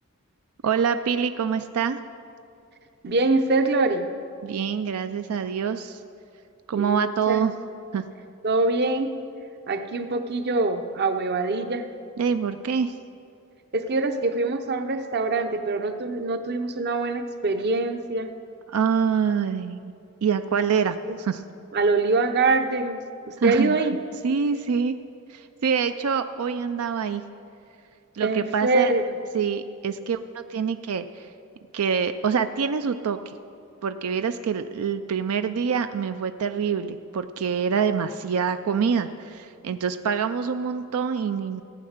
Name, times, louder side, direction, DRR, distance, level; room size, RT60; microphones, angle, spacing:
voice 1, 0.6-2.0 4.4-6.0 6.7-7.5 7.9-8.0 12.2-12.9 18.7-19.9 20.2-21.4 23.4-23.8 24.2-25.0 25.3-27.2 28.1-28.9 29.3-31.3 31.7-33.3 33.8-41.6, right 6 dB, 85° right, 10 dB, 0.4 m, -25 dB
voice 2, 3.0-4.1 6.7-7.5 8.4-9.2 9.7-11.9 13.7-18.3 21.0-21.2 21.7-24.0 28.2-29.0, right 3 dB, 50° right, 8 dB, 0.7 m, -24 dB
15.5 x 8.6 x 6.5 m, 2.5 s
head